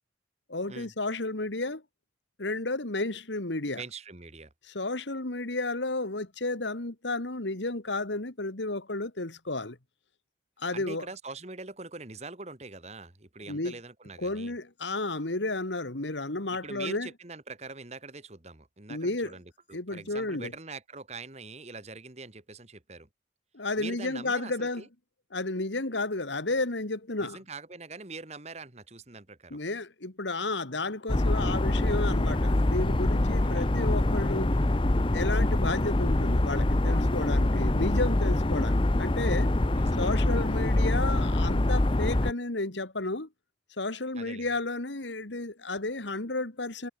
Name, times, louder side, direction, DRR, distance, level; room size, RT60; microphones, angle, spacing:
voice 1, 0.5-1.8 2.4-3.8 4.7-9.8 10.6-11.0 13.5-13.7 14.2-17.1 18.9-19.3 19.7-20.5 23.5-24.8 25.3-27.4 29.5-34.6 35.1-39.5 39.9-43.3 43.8-46.9, left 2 dB, 75° left, 2.2 m, -32 dB
voice 2, 3.8-4.5 10.7-14.5 16.6-23.1 23.8-24.9 27.2-29.6 33.4-33.8 39.7-40.5 44.1-44.5, right 3 dB, 35° right, 1.8 m, -43 dB
sound 1, 31.1-36.4, left 2 dB, 50° left, 6.7 m, -57 dB
sound 2, 31.1-42.3, left 1 dB, 30° left, 0.7 m, -25 dB
head